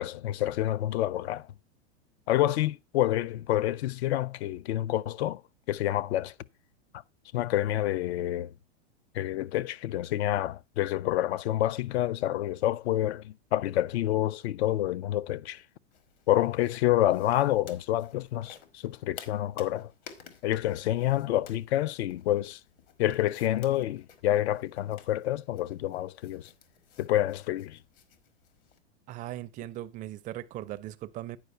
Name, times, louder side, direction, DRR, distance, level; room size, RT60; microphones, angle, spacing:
voice 1, 0.0-1.5 2.3-5.4 5.7-6.3 7.3-8.5 9.1-15.6 16.3-19.9 20.4-22.6 23.0-26.5 27.0-27.8, left 13 dB, 70° left, 0.5 m, -28 dB
sound 1, 15.9-28.8, left 8 dB, 55° left, 1.5 m, -54 dB
voice 2, 29.1-31.4, right 14 dB, 25° right, 0.4 m, -39 dB
9.4 x 4.8 x 5.4 m
hypercardioid pair, 120°, 33 cm